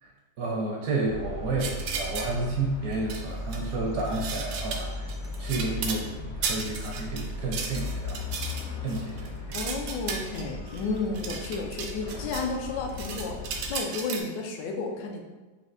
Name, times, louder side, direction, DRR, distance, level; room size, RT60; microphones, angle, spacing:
voice 1, 0.4-5.1 5.4-8.2 8.8-9.5, right 2 dB, 70° right, -1 dB, 0.9 m, -31 dB
sound 1, 1.0-13.8, left 2 dB, 60° left, 0.9 m, -37 dB
sound 2, 1.6-2.3 2.9-3.7 4.0-6.0 6.4-12.5 12.8-14.2, right 5 dB, 90° right, 1.3 m, -35 dB
voice 2, 9.5-15.2, left 3 dB, 85° left, 2 dB, 1.3 m, -32 dB
5.2 x 2.7 x 2.5 m, 1.2 s
omnidirectional pair, 1.9 m